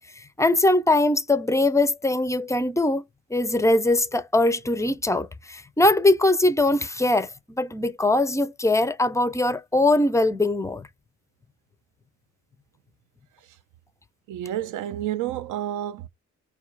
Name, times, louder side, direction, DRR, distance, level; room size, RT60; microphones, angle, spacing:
voice 1, 0.4-3.0 3.3-7.3 7.6-10.9, left 2 dB, 10° left, 0.4 m, -21 dB
voice 2, 14.3-16.1, right 12 dB, 80° right, 0.5 m, -30 dB
4.6 x 2.4 x 3.1 m
cardioid pair, 115°, 30 cm